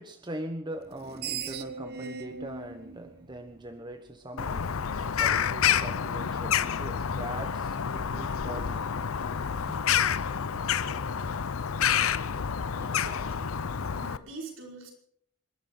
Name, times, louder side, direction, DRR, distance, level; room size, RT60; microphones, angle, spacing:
voice 1, 0.0-4.7 5.2-8.9 9.7-10.0, right 1 dB, 20° right, 6 dB, 1.1 m, -41 dB
Screech, 0.9-4.1, right 6 dB, 45° right, 0.9 m, -39 dB
Bird vocalization bird call bird song, 4.4-14.2, left 8 dB, 80° left, 0.6 m, -28 dB
voice 2, 12.8-13.5 13.9-14.9, right 2 dB, 70° right, 0 dB, 5.3 m, -43 dB
28.0 x 12.5 x 3.9 m, 0.66 s
head